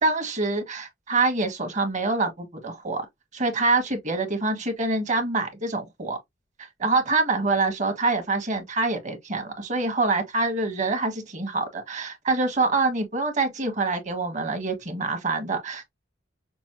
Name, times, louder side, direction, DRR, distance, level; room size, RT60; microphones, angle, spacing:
voice 1, 0.0-3.0 3.3-6.2 6.6-15.9, right 3 dB, 40° right, 1.3 m, -25 dB
6.0 x 2.0 x 2.9 m
head